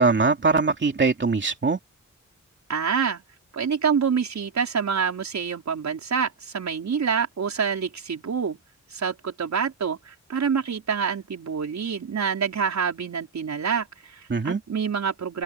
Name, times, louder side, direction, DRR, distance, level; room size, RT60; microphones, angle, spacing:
voice 1, 0.0-1.8 14.3-14.6, right 4 dB, 40° right, 3.1 m, -21 dB
voice 2, 2.7-3.2 3.5-8.6 8.9-15.4, right 6 dB, 65° right, 5.3 m, -27 dB
wide cardioid pair, 135°, 30 cm